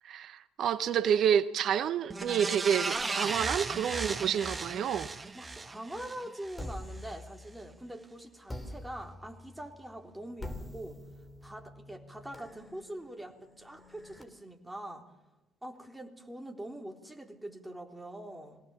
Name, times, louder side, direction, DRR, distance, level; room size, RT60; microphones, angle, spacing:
voice 1, 0.0-5.1, right 8 dB, 60° right, 0.7 m, -29 dB
sound 1, 2.1-6.6 7.0-7.1, right 3 dB, 25° right, 1.3 m, -36 dB
voice 2, 5.3-11.0 11.4-15.1 15.6-18.6, right 1 dB, 10° right, 3.8 m, -44 dB
sound 2, 6.6-7.9 8.5-14.2, left 1 dB, 20° left, 4.1 m, -46 dB
23.5 x 17.5 x 7.3 m
hypercardioid pair, 50°, 0 cm